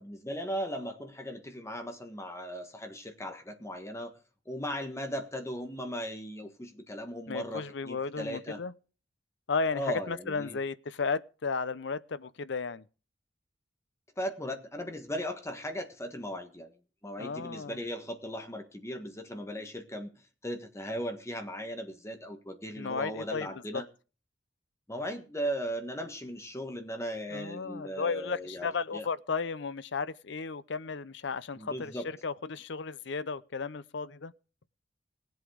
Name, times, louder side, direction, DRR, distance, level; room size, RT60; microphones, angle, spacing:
voice 1, 0.0-4.1 4.4-8.6 9.7-10.6 14.2-16.7 17.0-20.1 20.4-23.9 24.9-29.1 31.6-32.1, equal, 15° left, 1.5 m, -37 dB
voice 2, 7.3-8.7 9.5-12.8 17.2-17.8 22.8-23.5 23.7-23.8 27.3-31.9 32.2-34.3, left 4 dB, 70° left, 0.7 m, -34 dB
18.0 x 8.1 x 5.0 m
head